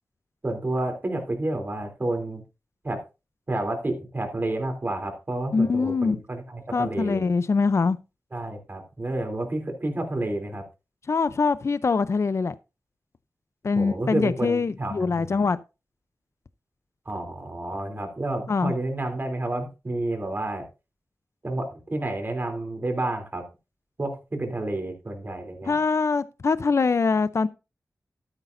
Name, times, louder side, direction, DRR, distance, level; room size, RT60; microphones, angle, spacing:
voice 1, 0.4-2.4 2.8-3.0 3.5-7.3 8.3-10.6 13.7-15.5 17.0-20.6 21.4-23.4 24.0-25.8, right 2 dB, 35° right, 3.2 m, -30 dB
voice 2, 5.5-6.2 6.7-8.0 11.1-12.6 13.6-15.6 18.5-18.7 25.7-27.5, left 4 dB, 55° left, 0.6 m, -23 dB
12.5 x 9.9 x 2.6 m
wide cardioid pair, 105°, 6 cm